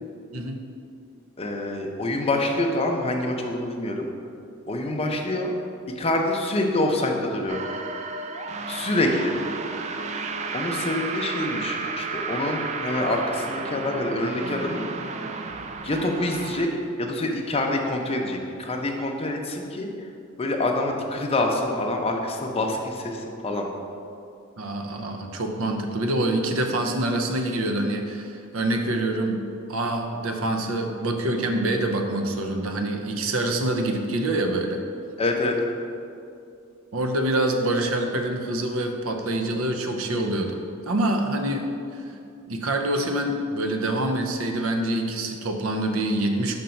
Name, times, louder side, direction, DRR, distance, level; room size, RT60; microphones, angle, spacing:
voice 1, 1.4-4.1 4.7-5.5 6.0-7.6 8.7-9.3 10.5-14.8 15.8-16.7 17.0-19.9 20.4-23.7 35.2-35.5, left 2 dB, 30° left, 1 dB, 0.6 m, -26 dB
sound 1, 7.5-16.7, right 4 dB, 30° right, 0.3 m, -32 dB
voice 2, 24.6-29.4 29.7-34.8 36.9-40.6 40.9-41.7 41.9-42.0 42.5-46.6, right 1 dB, 75° right, 4 dB, 0.6 m, -26 dB
5.2 x 4.0 x 5.7 m, 2.5 s
head